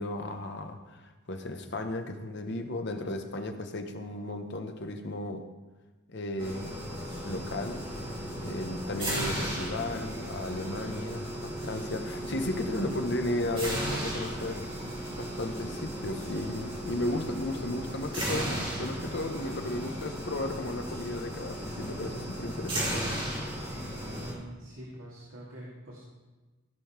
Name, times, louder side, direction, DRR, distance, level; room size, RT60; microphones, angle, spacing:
voice 1, 0.0-5.4 6.1-7.0 7.2-7.8 8.4-14.7 15.2-23.1, left 1 dB, 50° left, 6 dB, 1.0 m, -35 dB
sound 1, 6.4-24.3, equal, 25° right, 2.8 m, -35 dB
voice 2, 24.0-26.0, right 1 dB, 70° right, -6 dB, 2.5 m, -45 dB
15.5 x 5.4 x 6.0 m, 1.2 s
head